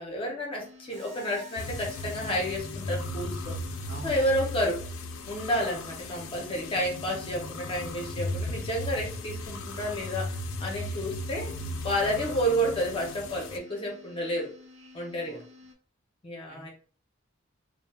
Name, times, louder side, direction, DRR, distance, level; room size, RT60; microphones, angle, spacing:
voice 1, 0.0-3.6 4.0-4.8 5.3-10.3 10.6-11.5 11.8-14.5 14.9-15.4 16.2-16.7, equal, 25° left, -1 dB, 0.6 m, -30 dB
sound 1, 0.6-15.7, left 3 dB, 80° right, 0.7 m, -52 dB
Mechanisms, 0.9-2.4, right 2 dB, 55° right, 1.2 m, -50 dB
sound 2, 1.6-13.6, left 1 dB, 85° left, 0.4 m, -36 dB
voice 2, 3.9-4.5 5.5-5.7 12.2-12.4 15.2-15.4 16.5-16.7, right 2 dB, 35° right, -1 dB, 0.7 m, -46 dB
3.1 x 2.0 x 2.3 m, 0.42 s
head